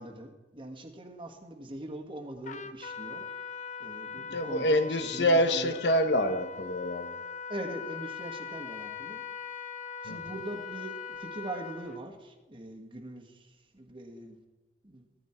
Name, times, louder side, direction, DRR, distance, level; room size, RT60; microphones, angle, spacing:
voice 1, 0.0-3.2 3.8-4.8 5.1-5.8 7.5-9.2 10.0-14.4 14.8-15.1, right 1 dB, 30° right, 3 dB, 1.4 m, -42 dB
Trumpet, 2.4-12.0, left 5 dB, 45° left, 0.7 m, -41 dB
voice 2, 4.2-7.2 10.0-10.2, equal, 70° left, 9 dB, 1.1 m, -26 dB
15.5 x 13.5 x 4.4 m, 1.2 s
head